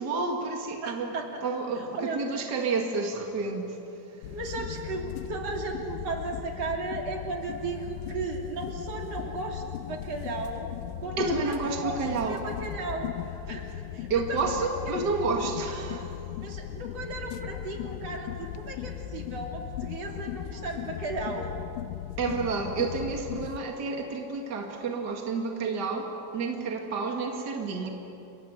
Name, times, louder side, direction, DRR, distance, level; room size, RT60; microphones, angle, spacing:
voice 1, 0.0-1.1 1.4-4.3 11.2-12.5 14.1-16.2 22.2-27.9, right 4 dB, 70° right, 2 dB, 0.9 m, -30 dB
voice 2, 0.8-1.4 1.9-2.2 4.3-10.7 11.0-12.0 12.3-13.6 13.9-14.7 16.4-21.5, right 3 dB, 40° right, 1 dB, 3.2 m, -35 dB
sound 1, 4.2-23.6, left 12 dB, 80° left, 3.0 m, -38 dB
29.5 x 25.0 x 8.0 m, 2.8 s
omnidirectional pair, 5.7 m